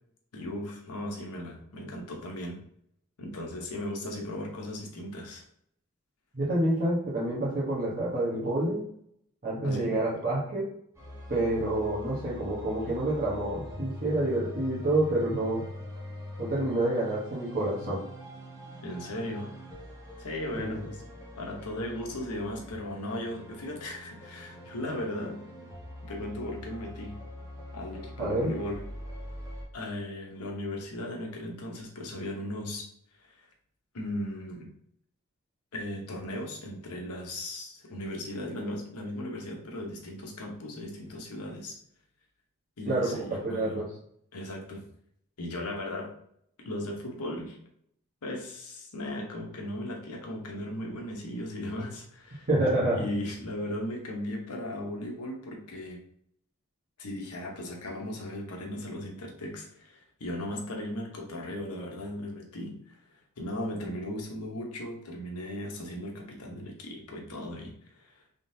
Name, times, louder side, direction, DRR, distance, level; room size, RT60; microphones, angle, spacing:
voice 1, 0.3-2.6 3.2-5.4 9.6-10.0 18.8-19.5 20.2-21.0 21.3-25.4 26.0-27.2 27.7-28.8 29.7-32.9 33.2-33.5 33.9-34.7 35.7-41.8 42.8-43.9 44.3-44.8 45.4-46.1 46.6-47.6 48.2-52.5 52.9-56.0 57.0-63.0 63.4-68.2, left 1 dB, 90° left, 1 dB, 1.0 m, -37 dB
voice 2, 6.3-8.8 9.4-10.7 11.3-15.6 16.4-18.0 20.6-20.8 28.2-28.5 42.9-43.9 52.5-53.1, right 1 dB, 40° right, -9 dB, 1.2 m, -28 dB
sound 1, 10.9-29.6, left 1 dB, 15° right, 1.3 m, -43 dB
3.7 x 3.6 x 2.7 m, 0.68 s
head